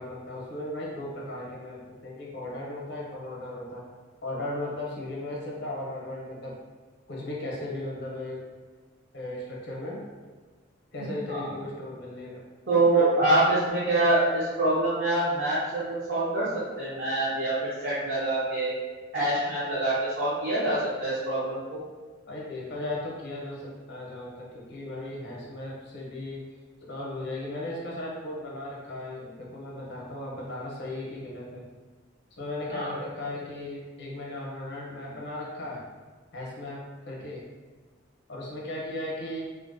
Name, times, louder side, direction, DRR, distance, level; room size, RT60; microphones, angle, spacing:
voice 1, 0.0-3.9 4.2-6.6 7.1-8.4 9.1-10.0 10.9-12.4 12.9-13.1 22.3-26.4 26.8-31.7 32.4-35.8 36.3-36.8 37.1-37.4 38.3-39.4, left 1 dB, 55° left, -4 dB, 0.6 m, -36 dB
voice 2, 12.7-18.7 19.1-21.8 32.7-33.0, right 2 dB, 50° right, -10 dB, 0.6 m, -25 dB
2.4 x 2.1 x 2.4 m, 1.4 s
head